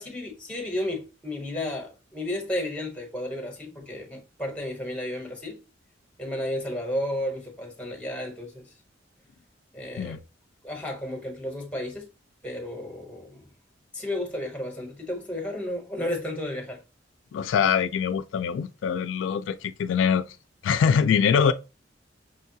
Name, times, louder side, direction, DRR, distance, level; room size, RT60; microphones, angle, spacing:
voice 1, 0.0-5.6 6.2-8.7 9.7-10.2 10.6-12.1 12.4-13.4 13.9-16.8, left 1 dB, 5° left, 1.1 m, -32 dB
voice 2, 17.3-20.3 20.6-21.5, left 7 dB, 85° left, 0.3 m, -23 dB
5.4 x 2.3 x 2.7 m
head